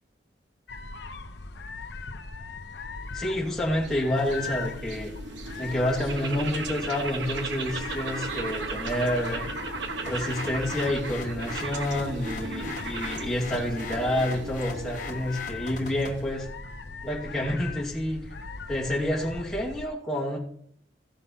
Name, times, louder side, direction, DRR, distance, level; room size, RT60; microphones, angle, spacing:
sound 1, 0.7-19.9, left 3 dB, 75° left, 0.8 m, -40 dB
sound 2, 3.0-16.4, right 3 dB, 90° right, 1.3 m, -37 dB
voice 1, 3.1-5.1 5.6-9.5 10.0-16.5 17.0-18.2 18.7-20.4, left 1 dB, ahead, -7 dB, 2.4 m, -29 dB
sound 3, 10.1-16.3, left 3 dB, 45° left, 1.2 m, -41 dB
15.5 x 5.3 x 5.8 m, 0.64 s
head